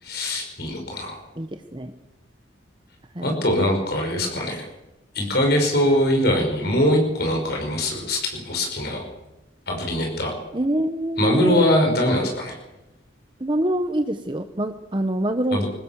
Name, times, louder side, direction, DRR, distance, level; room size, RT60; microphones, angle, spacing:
voice 1, 0.0-1.2 3.2-4.7 5.1-9.0 9.7-10.3 11.2-12.6 15.5-15.7, left 1 dB, 55° left, 1 dB, 6.0 m, -22 dB
voice 2, 1.4-1.9 3.1-3.3 10.5-11.7 13.4-15.6, right 1 dB, 25° right, 7 dB, 1.0 m, -25 dB
24.5 x 19.5 x 7.4 m, 0.99 s
head